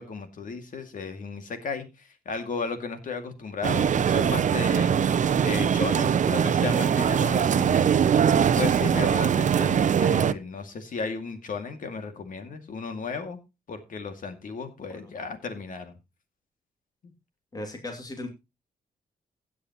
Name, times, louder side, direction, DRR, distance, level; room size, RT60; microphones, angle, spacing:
voice 1, 0.0-5.1 5.4-8.0 8.6-13.4 13.7-15.9, left 4 dB, 60° left, 7 dB, 2.3 m, -34 dB
sound 1, 3.6-10.3, right 8 dB, 55° right, 0.6 m, -22 dB
voice 2, 17.5-18.3, left 2 dB, 25° left, 4 dB, 2.5 m, -36 dB
16.0 x 8.5 x 3.0 m, 0.26 s
cardioid pair, 100°, 15 cm